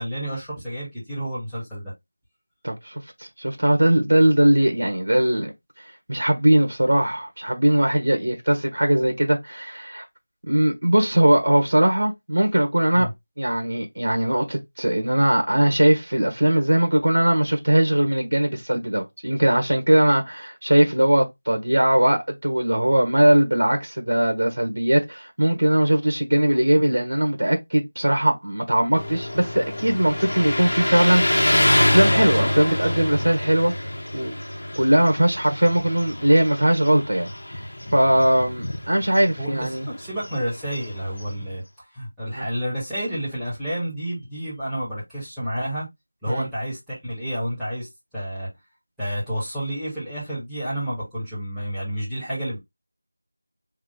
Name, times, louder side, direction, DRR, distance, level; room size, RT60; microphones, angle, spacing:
voice 1, 0.0-1.9 12.9-13.1 39.4-41.6 41.9-45.9 46.2-47.9 48.1-48.5 49.0-52.6, equal, ahead, 1.8 m, -30 dB
voice 2, 2.6-5.5 6.1-10.0 10.5-13.1 13.4-33.7 34.1-34.4 34.8-37.3 37.9-39.9 42.4-42.5 46.3-46.5, right 1 dB, 70° right, 1.3 m, -20 dB
Motorcycle, 28.9-41.6, left 1 dB, 70° left, 1.3 m, -26 dB
3.7 x 2.8 x 3.8 m
figure-of-eight pair, 175°, 0 cm